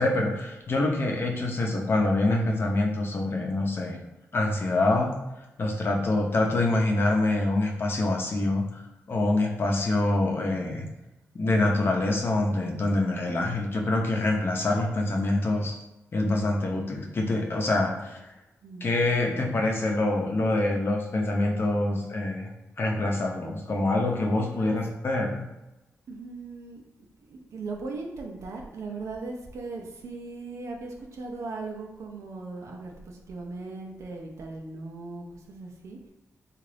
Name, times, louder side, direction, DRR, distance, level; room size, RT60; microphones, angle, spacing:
voice 1, 0.0-4.0 4.3-5.1 5.6-8.8 9.1-10.9 11.3-15.7 16.1-18.2 18.8-22.5 22.8-25.4, left 2 dB, 50° left, 1 dB, 0.7 m, -25 dB
voice 2, 18.6-19.7 24.5-24.8 26.1-26.8 27.2-36.0, right 3 dB, 75° right, 1 dB, 0.6 m, -39 dB
3.7 x 2.5 x 3.3 m, 0.96 s
cardioid pair, 90°, 5 cm